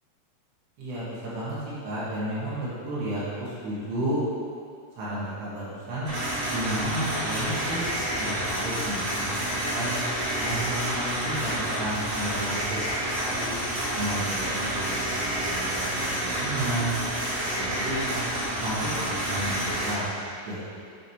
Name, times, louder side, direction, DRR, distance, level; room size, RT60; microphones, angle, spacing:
voice 1, 0.8-1.6 1.8-4.2 4.9-6.1 6.5-7.9 8.2-9.4 9.7-9.9 10.4-11.5 11.8-13.6 13.9-17.2 17.5-18.2 18.6-20.1 20.5-20.6, right 1 dB, 75° right, -9 dB, 4.3 m, -32 dB
sound 1, 6.1-19.9, right 1 dB, 50° right, 3.0 m, -29 dB
8.9 x 8.3 x 3.0 m, 2.3 s
omnidirectional pair, 5.8 m